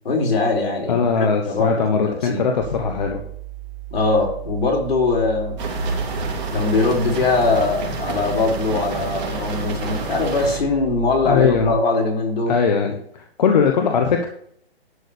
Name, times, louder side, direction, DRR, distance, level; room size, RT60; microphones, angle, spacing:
voice 1, 0.0-2.4 3.9-5.6 6.5-12.5, left 3 dB, 70° left, -2 dB, 4.3 m, -21 dB
voice 2, 0.9-3.2 11.3-11.7 12.5-14.3, left 6 dB, 45° left, 3 dB, 1.2 m, -20 dB
sound 1, 2.6-11.8, right 17 dB, 20° right, 0.8 m, -36 dB
sound 2, 5.6-10.6, right 3 dB, 45° right, 3.0 m, -28 dB
11.0 x 4.1 x 6.6 m, 0.66 s
hypercardioid pair, 160°, 32 cm